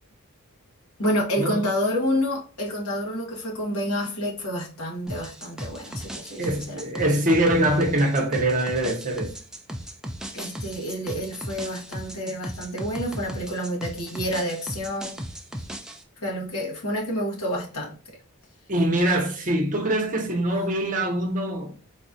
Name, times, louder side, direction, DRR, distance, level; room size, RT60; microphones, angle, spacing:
voice 1, 1.0-6.8 10.3-15.2 16.2-18.0 20.4-20.6, equal, 70° left, 1.2 m, -29 dB
sound 1, 5.1-16.0, equal, 5° right, 0.3 m, -36 dB
voice 2, 6.4-9.3 18.7-21.7, right 1 dB, 35° right, 0.9 m, -23 dB
4.0 x 2.3 x 2.6 m
head